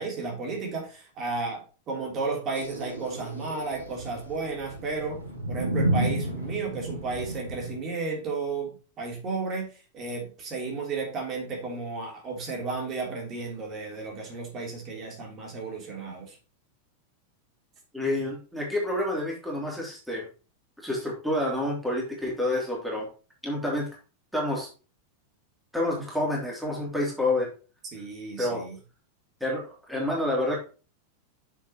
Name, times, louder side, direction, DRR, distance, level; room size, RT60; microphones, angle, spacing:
voice 1, 0.0-5.2 5.5-16.4 27.9-28.8, right 4 dB, 30° right, 0 dB, 3.3 m, -33 dB
sound 1, 2.6-7.8, right 1 dB, 85° right, 2.7 m, -31 dB
voice 2, 17.9-20.2 20.8-23.1 23.4-23.9 24.3-24.7 25.7-27.5 28.4-28.6 29.4-30.6, left 1 dB, ahead, -3 dB, 3.0 m, -28 dB
7.9 x 6.9 x 3.0 m, 0.34 s
figure-of-eight pair, 90°, 0 cm